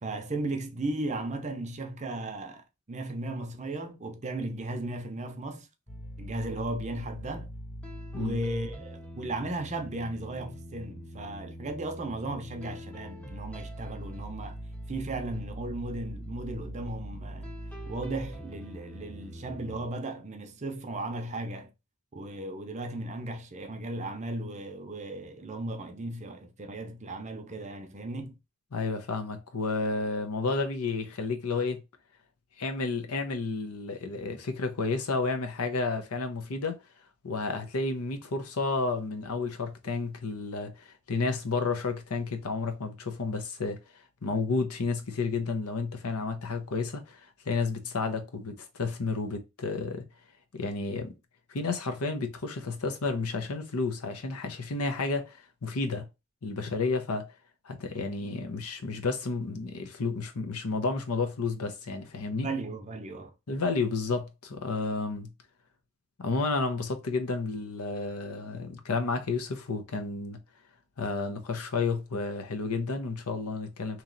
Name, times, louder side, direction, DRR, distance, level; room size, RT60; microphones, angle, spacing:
voice 1, 0.0-5.7 6.2-7.5 8.2-14.6 14.9-17.5 17.9-21.7 22.1-28.4 62.4-63.3, right 2 dB, 30° right, 0.6 m, -36 dB
sound 1, 5.9-19.9, equal, 5° left, 0.6 m, -42 dB
voice 2, 28.7-31.8 32.6-36.8 37.2-43.8 44.2-50.0 50.5-51.1 51.5-56.1 56.4-57.3 57.6-62.5 63.5-65.3 66.2-70.4 71.0-74.0, left 3 dB, 85° left, 0.8 m, -31 dB
3.1 x 2.8 x 3.9 m
head